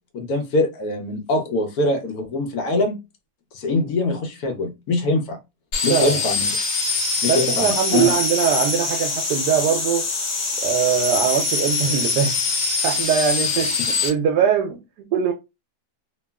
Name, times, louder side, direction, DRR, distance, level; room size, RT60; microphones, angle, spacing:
voice 1, 0.1-3.0 3.5-5.4 5.8-6.5 7.2-8.1, left 2 dB, 70° left, 1.0 m, -23 dB
sound 1, 5.7-14.1, left 4 dB, 90° left, 1.6 m, -23 dB
voice 2, 5.9-6.2 7.3-10.0 10.6-12.3 12.8-15.3, right 8 dB, 75° right, 1.1 m, -22 dB
3.0 x 2.3 x 2.2 m
omnidirectional pair, 1.8 m